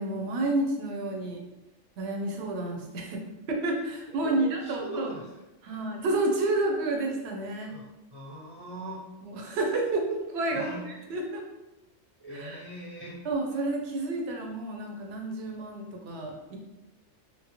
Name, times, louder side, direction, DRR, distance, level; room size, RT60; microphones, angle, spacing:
voice 1, 0.0-1.4 2.0-5.1 5.6-7.7 9.2-11.4 12.3-12.6 13.2-16.6, right 2 dB, 70° right, 1 dB, 0.8 m, -30 dB
voice 2, 4.1-5.2 5.6-5.8 7.7-7.8 8.1-9.0 10.5-10.8 12.2-13.2, right 1 dB, 25° right, -8 dB, 0.6 m, -41 dB
2.9 x 2.0 x 2.8 m, 1.0 s
omnidirectional pair, 1.2 m